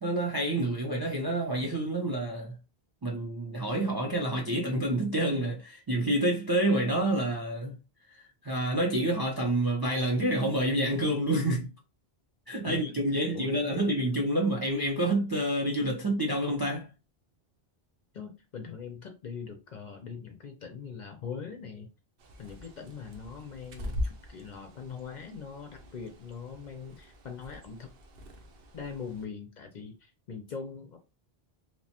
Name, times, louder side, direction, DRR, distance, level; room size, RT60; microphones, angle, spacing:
voice 1, 0.0-2.5 3.0-7.8 8.2-11.7 12.5-16.9, right 1 dB, 35° right, 0.4 m, -28 dB
voice 2, 13.1-13.9 18.1-21.9 22.4-27.9 28.7-31.0, left 6 dB, 55° left, 0.5 m, -42 dB
Bird, 22.2-29.2, left 1 dB, 70° right, 0.9 m, -42 dB
2.9 x 2.1 x 2.8 m
omnidirectional pair, 1.1 m